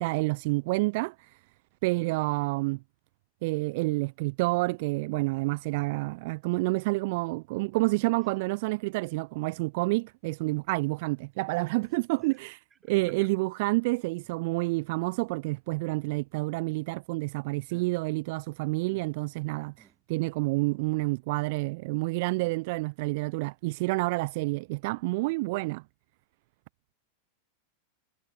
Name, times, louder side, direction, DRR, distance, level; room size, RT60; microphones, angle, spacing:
voice 1, 0.0-1.4 1.8-2.8 3.4-25.8, right 24 dB, 50° right, 0.9 m, -29 dB
voice 2, 13.0-13.4 17.7-17.9 18.9-19.1 19.8-20.0 22.4-22.5, right 6 dB, 20° right, 3.7 m, -51 dB
figure-of-eight pair, 90°, 0 cm